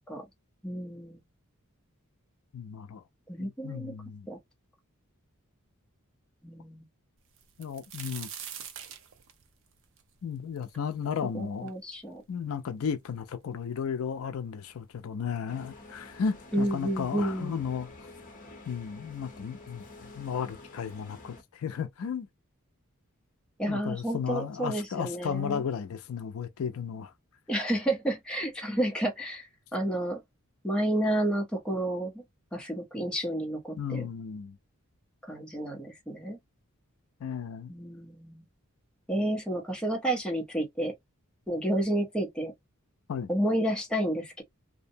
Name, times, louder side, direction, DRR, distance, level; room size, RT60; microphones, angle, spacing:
voice 1, 0.6-1.2 3.3-3.9 4.3-4.4 6.4-6.8 11.3-12.2 16.5-17.6 23.6-25.6 27.5-30.2 30.6-32.1 32.5-34.1 35.3-36.4 37.7-38.4 39.1-40.9 41.5-42.5 43.3-44.4, right 1 dB, 5° left, 0.6 m, -30 dB
voice 2, 2.5-3.0 3.4-4.3 7.6-8.3 10.2-11.7 12.3-17.9 18.7-22.3 23.7-27.1 33.8-34.6 37.2-37.7 43.1-43.3, left 7 dB, 70° left, 0.4 m, -34 dB
sound 1, 7.4-11.2 11.7-11.8 12.5-12.6 12.9-13.6 14.5-14.6 14.9-15.1, right 8 dB, 60° right, 0.6 m, -43 dB
sound 2, 15.5-21.4, left 2 dB, 40° left, 0.7 m, -49 dB
2.6 x 2.0 x 2.6 m
head